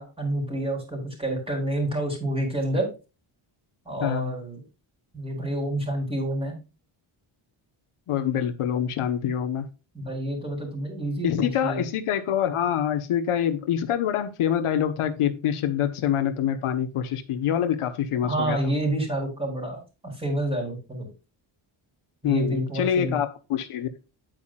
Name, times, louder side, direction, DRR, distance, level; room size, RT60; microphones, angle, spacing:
voice 1, 0.0-2.9 3.9-4.6 5.1-6.6 9.9-11.8 18.2-21.1 22.2-23.2, right 1 dB, 10° right, 3.9 m, -28 dB
voice 2, 4.0-4.3 8.1-9.7 11.2-18.7 22.2-23.9, left 9 dB, 85° left, 1.3 m, -25 dB
9.5 x 8.6 x 2.5 m
wide cardioid pair, 175°, 50 cm